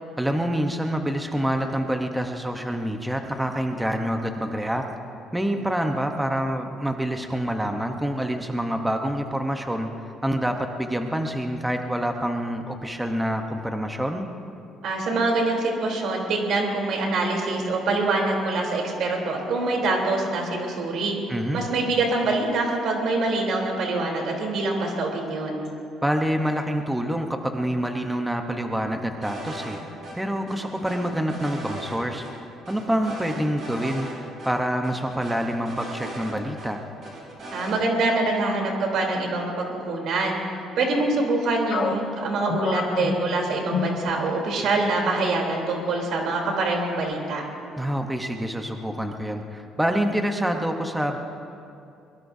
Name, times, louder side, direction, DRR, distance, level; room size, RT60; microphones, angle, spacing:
voice 1, 0.2-4.8 5.3-9.9 10.2-14.3 21.3-21.6 26.0-29.8 30.1-32.2 32.7-36.8 47.8-51.2, equal, 5° right, 4 dB, 0.9 m, -26 dB
voice 2, 14.8-21.2 21.5-25.7 37.5-40.4 40.8-47.4, right 2 dB, 60° right, 0 dB, 3.4 m, -25 dB
sound 1, 29.2-29.8 30.0-30.1 30.5-32.0 32.2-32.3 32.7-34.1 34.4-34.5 34.8-36.7 37.0-37.8, right 1 dB, 40° right, 5.2 m, -38 dB
sound 2, 41.7-44.6 44.9-45.1 45.7-46.2, left 5 dB, 50° left, 1.3 m, -30 dB
23.0 x 22.5 x 2.7 m, 2.6 s
cardioid pair, 155°, 0 cm